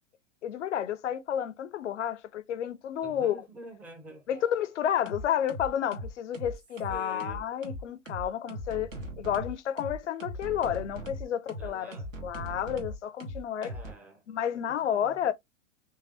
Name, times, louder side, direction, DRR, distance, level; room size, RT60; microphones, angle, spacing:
voice 1, 0.4-3.4 4.3-11.9 12.2-13.7 14.3-15.3, left 9 dB, 65° left, 0.6 m, -31 dB
voice 2, 3.0-4.2 6.9-7.5 11.6-12.1 13.6-14.2 14.5-15.2, right 2 dB, 5° right, 0.5 m, -46 dB
sound 1, 4.3-4.6 5.1-13.9, right 1 dB, 85° right, 1.2 m, -39 dB
3.4 x 3.0 x 2.3 m
figure-of-eight pair, 100°, 38 cm